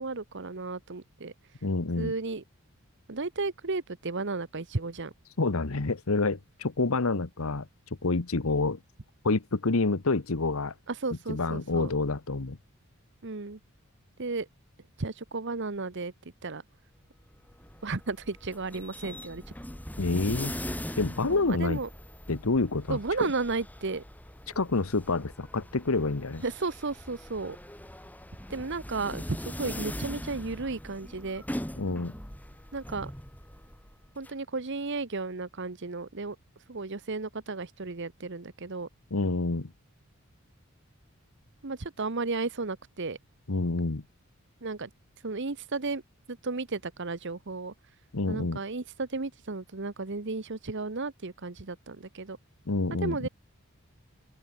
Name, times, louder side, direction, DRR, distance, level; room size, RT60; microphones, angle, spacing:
voice 1, 0.0-1.3 2.0-2.4 3.1-5.1 10.9-11.9 13.2-13.6 14.2-14.5 15.0-16.1 16.4-16.6 17.8-19.4 21.3-21.9 22.9-24.0 26.4-27.6 28.5-31.4 32.7-33.1 34.2-36.4 36.7-38.9 41.6-43.2 44.6-44.9 45.2-46.0 46.3-47.7 48.3-52.4 52.9-53.3, right 3 dB, 55° right, 1.1 m, -33 dB
voice 2, 1.6-2.1 5.4-7.7 8.0-8.8 9.2-10.7 11.3-12.6 20.0-20.6 21.0-21.8 22.3-23.3 24.5-26.4 31.8-32.2 39.1-39.7 43.5-44.0 48.1-48.6 52.7-53.3, left 3 dB, 70° left, 1.1 m, -28 dB
sound 1, 17.3-34.3, left 1 dB, 5° left, 3.7 m, -41 dB
open air
head